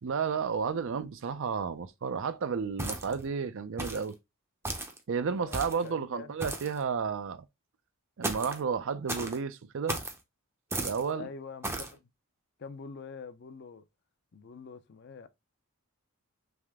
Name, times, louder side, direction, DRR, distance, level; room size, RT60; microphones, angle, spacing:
voice 1, 0.0-4.2 5.1-7.4 8.2-10.0 10.8-11.3, right 6 dB, 60° right, 0.4 m, -32 dB
sound 1, 2.8-3.3 3.8-4.1 4.6-5.0 5.5-5.9 6.4-6.8 8.2-8.6 9.1-9.4 9.9-10.2 10.7-11.0 11.6-11.9, right 2 dB, 10° right, 0.5 m, -35 dB
voice 2, 5.4-6.3 11.1-12.1 12.6-13.8 14.3-15.3, left 5 dB, 50° left, 0.5 m, -45 dB
3.5 x 3.2 x 3.4 m
head